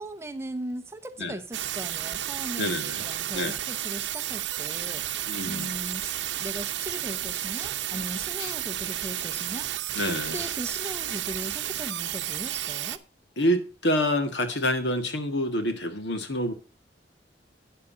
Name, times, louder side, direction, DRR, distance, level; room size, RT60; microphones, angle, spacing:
voice 1, 0.0-5.1 5.5-9.7 10.1-13.0, right 1 dB, 15° right, 0.9 m, -38 dB
sound 1, 1.5-13.0, right 12 dB, 80° right, 0.7 m, -32 dB
voice 2, 2.6-3.0 3.3-3.6 5.3-5.7 8.4-8.5 9.9-10.4 13.4-16.5, equal, 75° left, 1.7 m, -27 dB
13.0 x 9.5 x 2.7 m
head